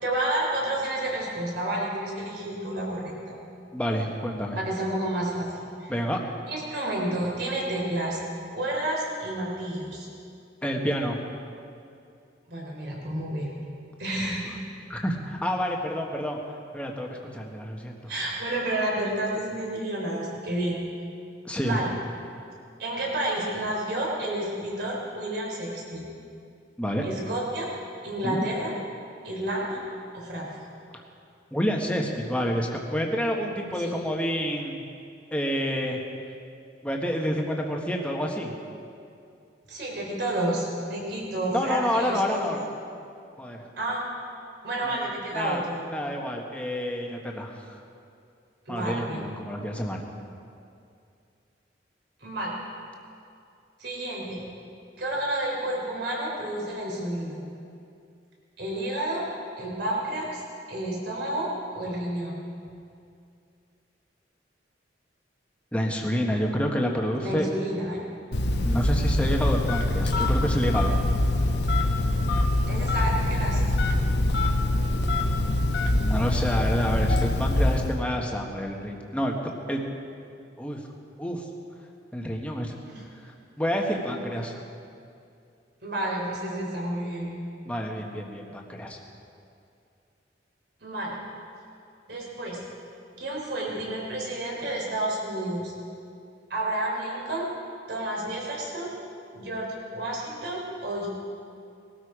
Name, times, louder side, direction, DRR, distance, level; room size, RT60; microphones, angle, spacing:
voice 1, 0.0-3.4 4.6-5.9 6.5-8.2 8.5-10.1 12.5-13.5 14.0-14.5 18.1-20.8 21.6-21.9 22.8-26.1 27.0-27.7 28.0-28.7 29.2-29.8 30.1-30.5 33.8-33.9 39.7-42.4 43.8-44.0 44.6-45.8 48.7-49.2 52.2-52.5 53.8-54.4 55.0-57.4 58.6-59.3 59.6-60.4 60.7-62.4 67.2-68.0 72.7-73.6 82.9-83.0 85.8-87.4 90.8-91.2 92.1-92.6 93.2-95.7 96.5-97.5 97.9-98.9 99.3-101.1, right 1 dB, 60° right, -2 dB, 3.8 m, -30 dB
voice 2, 3.7-4.6 5.9-6.2 10.6-11.2 14.9-16.4 16.7-18.1 21.4-21.8 26.8-27.0 28.2-28.5 31.5-34.8 35.3-36.0 36.8-38.5 41.5-42.6 43.4-43.6 44.8-45.1 45.3-45.6 45.9-47.5 48.7-50.0 65.7-67.4 68.6-70.9 76.0-79.4 79.7-79.8 80.6-80.8 81.2-81.4 82.1-82.8 83.2-84.6 87.6-89.0, equal, 5° left, 0 dB, 1.4 m, -28 dB
Telephone, 68.3-78.0, left 1 dB, 60° left, 1.1 m, -24 dB
20.0 x 13.0 x 5.0 m, 2.5 s
head